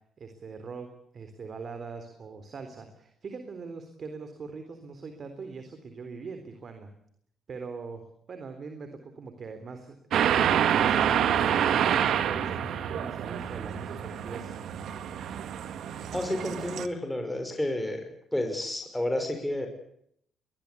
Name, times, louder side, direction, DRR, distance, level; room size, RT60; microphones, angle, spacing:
voice 1, 0.2-6.9 7.5-14.5, right 4 dB, 50° right, 7 dB, 3.6 m, -42 dB
sound 1, 10.1-16.9, right 9 dB, 75° right, 1.9 m, -27 dB
voice 2, 16.1-18.0 18.3-19.7, left 1 dB, 5° left, 5 dB, 5.9 m, -30 dB
22.0 x 21.0 x 8.4 m, 0.70 s
cardioid pair, 90°, 0 cm